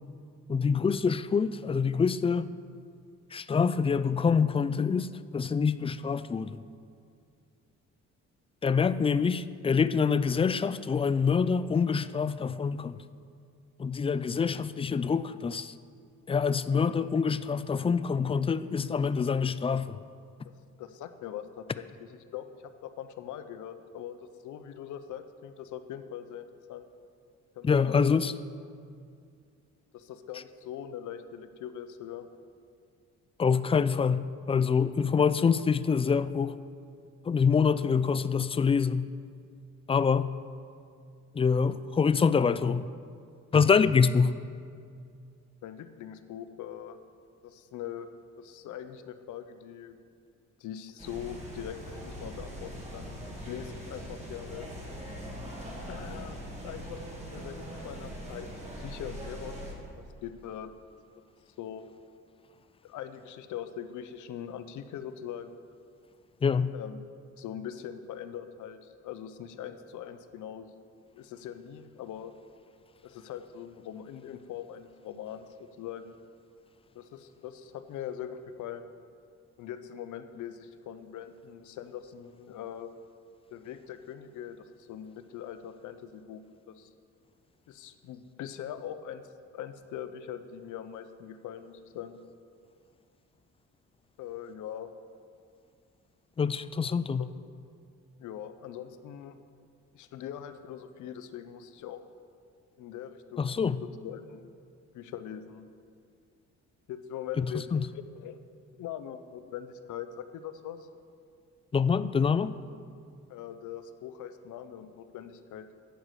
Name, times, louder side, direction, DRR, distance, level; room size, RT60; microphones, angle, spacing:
voice 1, 0.5-2.5 3.3-6.6 8.6-13.0 13.8-15.7 16.3-20.0 27.6-28.3 33.4-36.5 37.3-39.1 39.9-40.3 41.4-42.9 43.5-44.3 66.4-66.7 96.4-97.2 103.4-103.8 107.4-107.5 107.7-107.8 111.7-112.5, left 5 dB, 20° left, 15 dB, 0.3 m, -26 dB
voice 2, 20.8-22.5 22.8-26.8 27.6-28.2 29.9-32.3 45.6-47.0 47.4-48.1 48.4-50.0 50.6-53.2 53.4-54.7 55.9-57.0 57.3-59.6 60.2-60.7 61.6-61.9 62.8-65.6 66.7-67.0 67.4-70.7 71.1-72.3 73.0-76.2 76.9-78.9 79.6-82.9 83.5-86.4 86.7-86.9 87.7-89.2 89.5-92.2 94.2-94.9 97.2-97.3 98.2-99.4 99.9-102.0 102.8-104.5 104.9-105.7 106.9-108.4 108.8-110.9 113.3-115.7, left 9 dB, 80° left, 10 dB, 0.7 m, -42 dB
sound 1, 51.0-59.7, equal, 20° right, 2.6 m, -41 dB
11.5 x 4.9 x 8.2 m, 2.3 s
cardioid pair, 90°, 30 cm